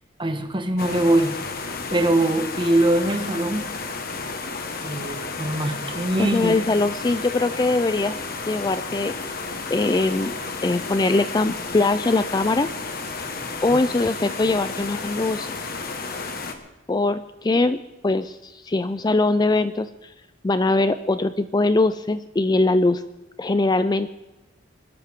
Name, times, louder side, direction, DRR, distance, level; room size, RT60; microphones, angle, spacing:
voice 1, 0.2-1.3 1.9-3.7 4.8-6.5 13.7-13.8, right 1 dB, 25° right, 6 dB, 1.3 m, -22 dB
sound 1, 0.8-16.5, left 4 dB, 50° left, 1.5 m, -32 dB
voice 2, 6.2-8.2 8.5-9.1 9.7-10.3 10.6-12.7 13.6-15.6 16.9-17.8 18.0-20.1 20.4-23.0 23.4-24.1, left 2 dB, 20° left, 12 dB, 0.4 m, -22 dB
23.5 x 12.5 x 3.6 m, 1.1 s
head